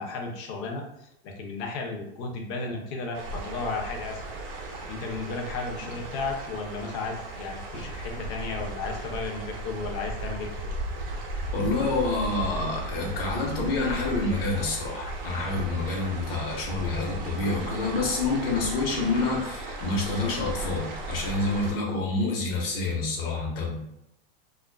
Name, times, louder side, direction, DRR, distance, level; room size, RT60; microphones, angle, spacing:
voice 1, 0.0-4.3 4.9-10.7, left 3 dB, 40° left, 2 dB, 0.6 m, -34 dB
sound 1, 3.1-21.7, right 2 dB, 50° right, 0.6 m, -36 dB
voice 2, 11.5-23.8, left 3 dB, 70° left, -1 dB, 1.0 m, -28 dB
2.4 x 2.4 x 2.2 m, 0.82 s
hypercardioid pair, 130°, 30 cm